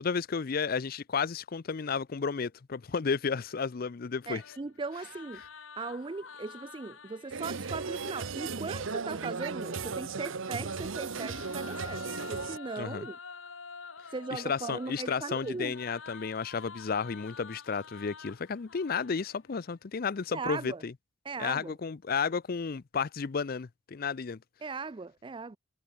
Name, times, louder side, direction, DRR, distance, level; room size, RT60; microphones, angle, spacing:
voice 1, 0.0-4.4 12.8-13.1 14.3-20.9 21.4-24.4, left 5 dB, 50° left, 0.5 m, -32 dB
voice 2, 4.3-5.4 5.8-13.2 14.1-15.7 20.3-20.8 21.3-21.7 24.6-25.6, right 4 dB, 25° right, 0.4 m, -38 dB
sound 1, 4.4-8.4 10.2-19.7, left 5 dB, 90° left, 2.4 m, -48 dB
sound 2, 7.3-12.6, right 4 dB, 85° right, 1.0 m, -36 dB
head